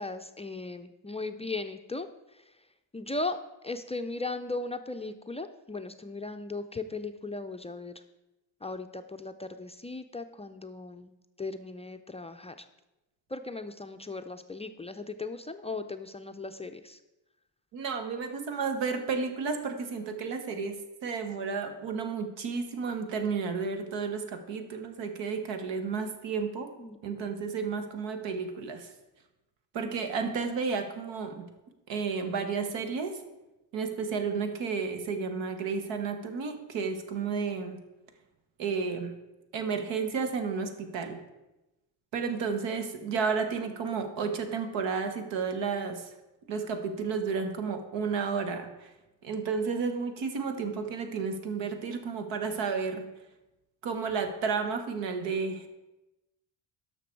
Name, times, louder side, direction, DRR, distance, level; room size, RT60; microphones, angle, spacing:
voice 1, 0.0-2.1 2.9-3.4 3.6-7.9 8.6-11.1 11.4-12.6 13.3-17.0 26.8-27.0 37.3-37.5, left 3 dB, 15° left, 7 dB, 0.4 m, -37 dB
voice 2, 17.7-26.7 27.0-28.9 29.7-31.5 31.9-33.2 33.7-37.8 38.6-39.2 39.5-41.2 42.1-46.1 46.5-48.9 49.2-53.1 53.8-55.7, right 5 dB, 90° right, 7 dB, 1.3 m, -32 dB
12.0 x 6.0 x 4.5 m, 1.0 s
cardioid pair, 105°, 43 cm